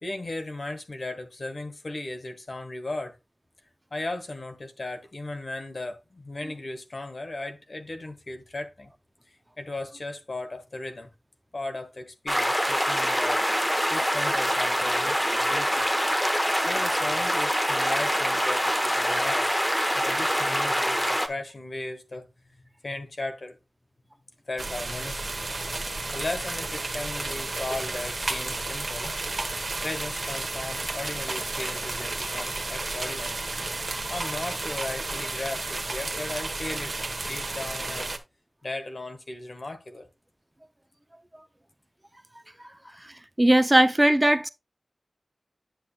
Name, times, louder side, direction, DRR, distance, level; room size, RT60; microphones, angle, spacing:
voice 1, 0.0-3.2 3.9-8.9 9.6-11.1 11.5-15.9 16.6-19.6 19.9-22.3 22.8-23.6 24.5-25.5 26.1-29.1 29.8-33.4 34.1-37.0 37.3-38.1 38.6-40.1 42.8-43.0, left 2 dB, 60° left, 1.3 m, -36 dB
sound 1, 12.3-21.3, equal, 5° left, 1.0 m, -25 dB
sound 2, 24.6-38.2, right 2 dB, 55° right, 1.0 m, -32 dB
voice 2, 43.4-44.5, right 1 dB, 20° right, 0.5 m, -19 dB
8.8 x 7.6 x 2.2 m
wide cardioid pair, 70°, 0 cm